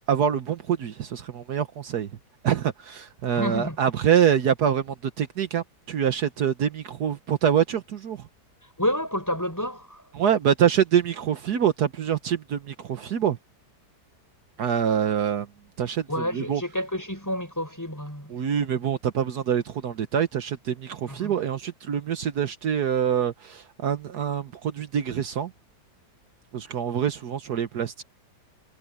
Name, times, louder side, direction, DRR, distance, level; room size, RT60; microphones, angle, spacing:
voice 1, 0.0-2.1 2.4-8.2 10.1-13.4 14.6-15.5 15.8-16.6 18.3-25.5 26.5-28.0, right 8 dB, 70° right, 1.6 m, -25 dB
voice 2, 3.3-3.8 8.8-10.0 16.1-18.3 21.1-21.3, equal, 10° left, 6.4 m, -29 dB
omnidirectional pair, 1.8 m